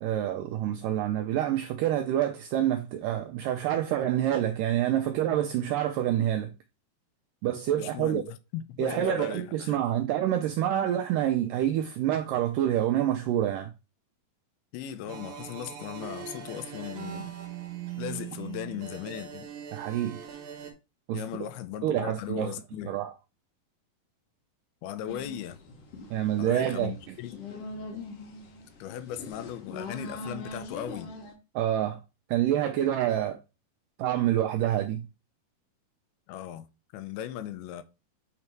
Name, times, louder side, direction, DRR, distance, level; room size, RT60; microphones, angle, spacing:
voice 1, 0.0-6.5 7.4-8.2 8.8-13.7 19.7-20.2 21.1-21.2 21.8-22.5 22.9-23.1 26.1-26.9 31.6-32.0 32.3-33.4 34.0-35.1, right 11 dB, 90° right, 1.9 m, -27 dB
voice 2, 7.8-9.8 14.7-17.4 18.0-19.5 21.1-23.0 24.8-25.6 26.4-27.4 28.8-31.1 36.3-36.7 36.9-37.8, left 11 dB, 85° left, 2.5 m, -37 dB
sound 1, 15.1-20.7, right 9 dB, 65° right, 2.3 m, -40 dB
sound 2, 25.1-31.3, left 2 dB, 70° left, 1.5 m, -42 dB
8.6 x 2.9 x 4.6 m
omnidirectional pair, 4.5 m